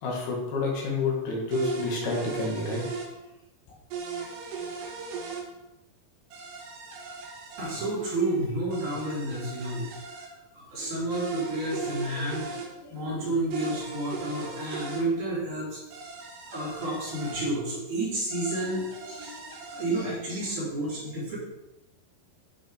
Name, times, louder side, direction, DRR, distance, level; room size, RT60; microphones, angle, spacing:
voice 1, 0.0-2.8, left 3 dB, 70° left, -2 dB, 3.7 m, -29 dB
sound 1, 1.5-3.1 3.9-5.4 6.3-7.9 8.7-10.3 11.1-12.7 13.5-15.0 15.9-17.5 18.3-19.9, right 4 dB, 90° right, 3.7 m, -38 dB
voice 2, 7.6-10.0 10.5-15.8 16.5-21.4, right 1 dB, 50° right, -7 dB, 5.1 m, -31 dB
11.5 x 5.4 x 5.1 m, 0.96 s
omnidirectional pair, 4.7 m